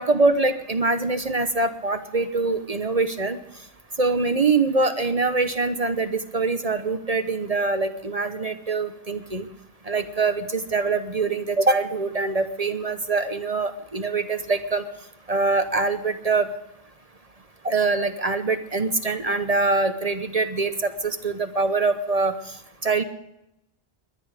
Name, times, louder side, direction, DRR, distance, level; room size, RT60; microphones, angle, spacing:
voice 1, 0.0-3.4 4.0-9.5 9.9-14.8 15.3-16.5 17.6-22.3 22.8-23.0, right 3 dB, 40° right, 9 dB, 1.0 m, -24 dB
22.0 x 10.5 x 5.0 m, 0.87 s
omnidirectional pair, 1.1 m